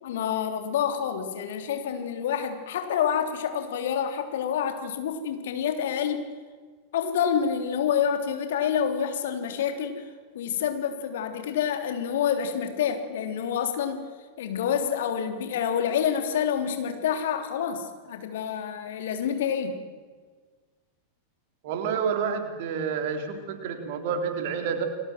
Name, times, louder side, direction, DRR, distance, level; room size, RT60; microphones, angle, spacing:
voice 1, 0.0-6.3 6.9-10.0 10.3-14.0 14.4-19.8, left 8 dB, 60° left, 6 dB, 3.3 m, -28 dB
voice 2, 21.6-24.8, right 6 dB, 50° right, 6 dB, 3.9 m, -29 dB
30.0 x 21.5 x 7.7 m, 1.5 s
figure-of-eight pair, 90°, 0 cm